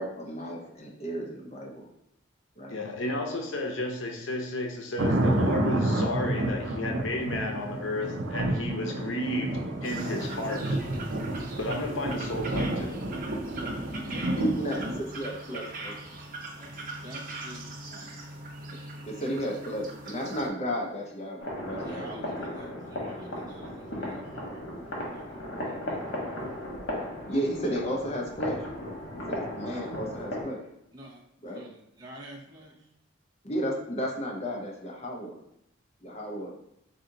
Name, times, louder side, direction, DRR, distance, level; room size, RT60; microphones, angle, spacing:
voice 1, 0.0-1.9 2.6-2.8 14.3-16.1 19.1-22.2 22.5-22.8 27.3-28.7 29.3-30.6 31.4-31.6 33.4-35.4 36.0-36.5, equal, 35° left, -1 dB, 0.7 m, -33 dB
voice 2, 2.7-10.8 11.6-13.0, left 1 dB, 85° left, 2 dB, 0.7 m, -32 dB
sound 1, 5.0-15.0, right 1 dB, 80° right, 0.5 m, -30 dB
sound 2, 9.8-20.5, right 2 dB, 45° right, 0.8 m, -41 dB
voice 3, 16.6-18.4 21.8-24.6 25.1-26.4 30.9-32.9, equal, 20° right, -5 dB, 1.0 m, -48 dB
sound 3, 21.4-30.4, left 1 dB, 65° left, 1.2 m, -36 dB
4.1 x 2.7 x 3.8 m, 0.80 s
head